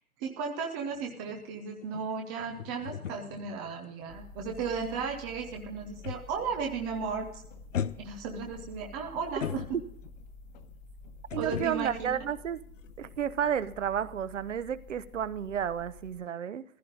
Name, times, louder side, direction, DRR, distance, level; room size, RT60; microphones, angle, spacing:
voice 1, 0.2-7.3 7.9-9.8 11.4-12.2, right 5 dB, 5° right, 2 dB, 0.5 m, -35 dB
sound 1, 0.9-6.6 6.9-7.2 7.7-10.2 11.3-13.2 13.5-13.7, left 8 dB, 60° left, 0.8 m, -40 dB
sound 2, 4.1-16.2, left 3 dB, 30° left, 1.4 m, -50 dB
voice 2, 11.3-12.6 13.0-16.6, right 9 dB, 60° right, 14 dB, 1.0 m, -32 dB
15.0 x 14.5 x 3.9 m, 0.63 s
figure-of-eight pair, 130°, 43 cm